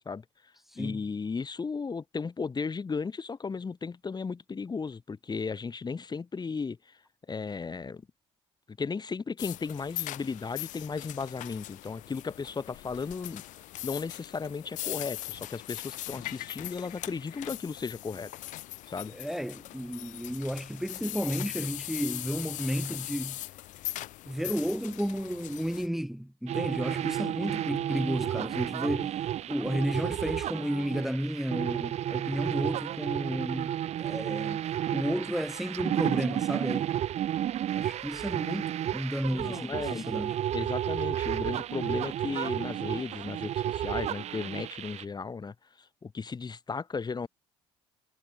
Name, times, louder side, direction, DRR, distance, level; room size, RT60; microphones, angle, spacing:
voice 1, 0.1-7.0 7.3-8.0 8.7-13.4 13.8-18.3 18.9-19.1 39.3-40.3 40.5-47.3, left 5 dB, 30° left, 1.9 m, -35 dB
voice 2, 0.7-1.0 19.1-23.4 24.3-34.6 34.9-36.9 37.7-40.4, equal, ahead, 1.4 m, -32 dB
sound 1, 9.4-25.9, left 16 dB, 65° left, 0.7 m, -40 dB
sound 2, 26.5-45.0, right 11 dB, 50° right, 0.6 m, -32 dB
hypercardioid pair, 60°, 14 cm